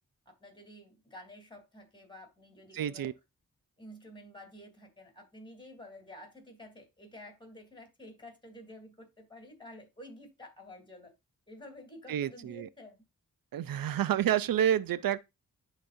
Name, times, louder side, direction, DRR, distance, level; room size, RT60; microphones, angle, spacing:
voice 1, 0.2-3.1 3.8-11.1 11.5-13.0, left 1 dB, 15° left, 3.3 m, -51 dB
voice 2, 2.7-3.1 12.1-12.7 13.5-15.2, right 10 dB, 80° right, 0.6 m, -29 dB
11.0 x 4.2 x 2.6 m
cardioid pair, 45°, 34 cm